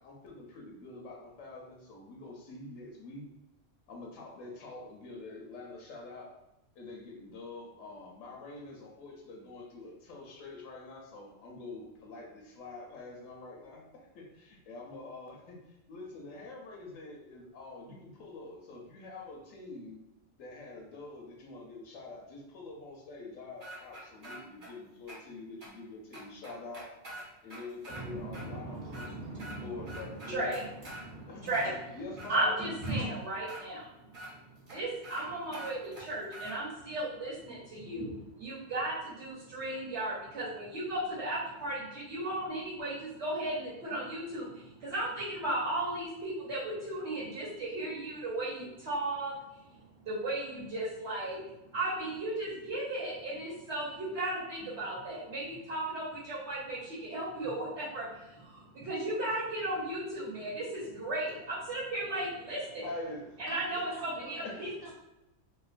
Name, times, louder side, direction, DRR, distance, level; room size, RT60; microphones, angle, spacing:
voice 1, 0.0-3.3 3.9-6.3 6.7-13.8 14.1-20.0 20.4-26.9 27.4-30.5 31.3-31.5 31.9-32.6 62.8-63.4 64.4-64.6, left 3 dB, 85° left, -1 dB, 1.0 m, -46 dB
sound 1, 23.6-24.7 25.1-25.2 25.6-25.7 26.1-28.0 28.3-28.5 28.8-29.6 29.9-31.0 31.5-32.3 32.8-32.9 33.5-33.6 34.1-34.3 34.7-34.8 35.0-35.2 35.5-36.6, right 1 dB, 45° right, 0.9 m, -45 dB
voice 2, 27.9-30.6 30.9-31.9 32.3-33.9 34.6-49.4 50.0-51.4 51.7-62.8 63.4-64.7, right 1 dB, 65° right, -8 dB, 1.0 m, -35 dB
voice 3, 61.8-62.2 62.7-62.8 63.5-64.9, right 1 dB, 35° left, -5 dB, 0.4 m, -47 dB
2.8 x 2.1 x 2.4 m, 0.95 s
omnidirectional pair, 1.3 m